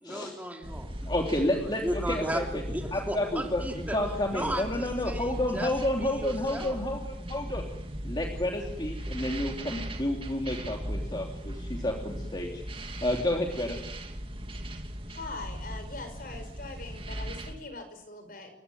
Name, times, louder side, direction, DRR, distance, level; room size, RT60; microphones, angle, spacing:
voice 1, 0.0-0.9 1.5-4.0 4.3-5.7 6.0-6.8, right 1 dB, 10° right, 3 dB, 2.8 m, -35 dB
sound 1, 0.6-17.5, equal, 30° right, 2.6 m, -38 dB
voice 2, 1.0-2.4 2.9-7.7 8.0-12.6 13.0-13.8, left 1 dB, 25° left, 1 dB, 3.0 m, -30 dB
voice 3, 15.1-18.5, left 3 dB, 55° left, 7 dB, 5.7 m, -42 dB
29.5 x 16.5 x 9.3 m, 0.92 s
head